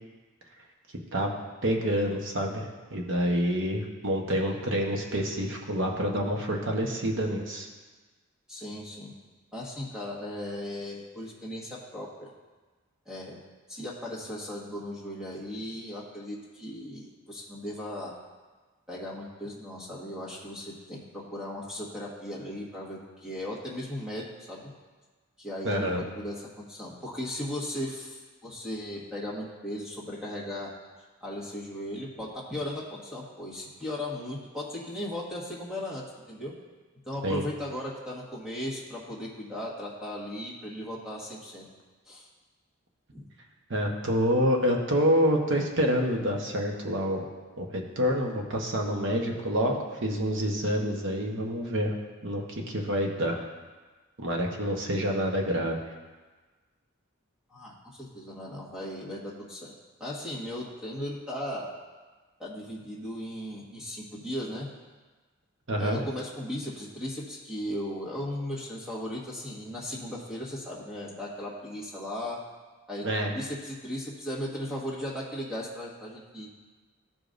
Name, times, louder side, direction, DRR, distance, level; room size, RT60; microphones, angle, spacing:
voice 1, 1.6-7.7 25.6-26.0 37.2-37.4 43.7-47.3 47.6-51.9 52.2-53.5 54.2-55.8 65.7-66.0 73.0-73.3, equal, 55° right, 1 dB, 1.0 m, -27 dB
voice 2, 8.5-9.1 9.5-12.3 13.0-13.4 13.7-18.1 18.9-24.7 25.4-30.7 31.2-36.5 37.0-41.6 42.1-42.3 43.1-43.3 57.5-59.7 60.0-61.7 62.4-64.7 65.8-72.4 72.9-73.1 73.3-76.5, left 1 dB, 5° right, -6 dB, 1.4 m, -37 dB
13.5 x 5.0 x 2.6 m, 1.3 s
head